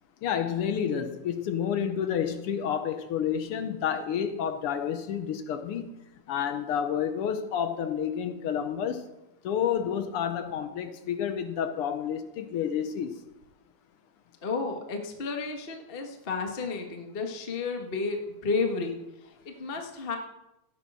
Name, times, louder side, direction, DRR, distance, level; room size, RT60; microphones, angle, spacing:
voice 1, 0.2-5.9 6.3-9.0 9.4-13.1, left 8 dB, 70° left, 9 dB, 1.4 m, -30 dB
voice 2, 14.4-19.0 19.4-20.2, left 4 dB, 35° left, 3 dB, 1.0 m, -32 dB
16.0 x 8.4 x 6.2 m, 0.93 s
omnidirectional pair, 3.5 m